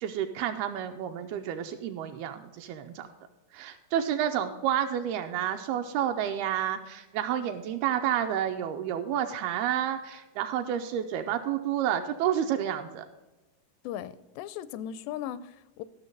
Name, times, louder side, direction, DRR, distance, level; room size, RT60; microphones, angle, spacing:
voice 1, 0.0-3.1 3.5-13.1, right 10 dB, 80° right, 6 dB, 2.3 m, -30 dB
voice 2, 13.8-15.8, left 10 dB, 85° left, 16 dB, 2.7 m, -37 dB
13.5 x 6.4 x 5.2 m, 1.1 s
omnidirectional pair, 4.9 m